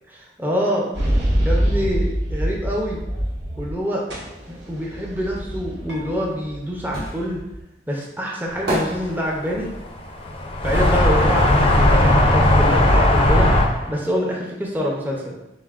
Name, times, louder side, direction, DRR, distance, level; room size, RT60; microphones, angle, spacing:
voice 1, 0.1-0.9 1.4-3.0 3.6-4.0 4.5-7.4 7.9-9.7 10.6-13.5 13.9-15.4, equal, 10° right, -3 dB, 0.6 m, -26 dB
sound 1, 0.9-3.8 4.1-7.6, equal, 85° right, 1.0 m, -25 dB
sound 2, 6.2-11.9 12.2-13.8 14.0-14.1, equal, 60° right, 1.5 m, -32 dB
sound 3, 8.8-9.0 9.5-14.0, left 1 dB, 35° left, 0.5 m, -17 dB
7.0 x 2.6 x 2.4 m, 0.92 s
head